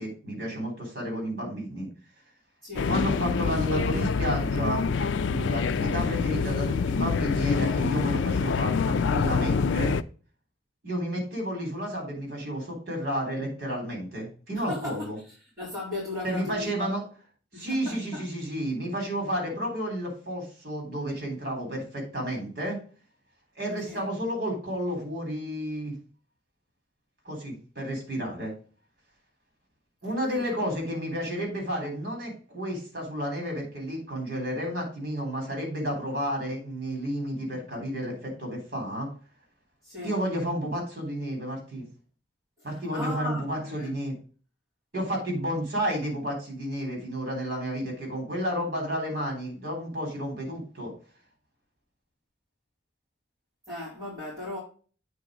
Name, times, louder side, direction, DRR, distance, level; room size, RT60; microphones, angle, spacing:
voice 1, 0.0-1.9 2.9-4.8 5.2-10.0 10.8-15.2 16.2-17.0 17.5-22.8 23.6-25.9 27.3-28.5 30.0-39.1 40.0-41.9 42.6-44.2 44.9-50.9, equal, 50° right, 3.6 m, -31 dB
voice 2, 2.6-2.9 14.5-15.1 15.6-16.7 17.5-18.2 23.8-24.1 30.2-30.6 39.8-40.2 42.6-43.9 53.7-54.6, left 2 dB, 20° right, 4.0 m, -37 dB
sound 1, 2.8-10.0, left 5 dB, 80° left, 0.4 m, -26 dB
8.4 x 3.9 x 4.9 m
head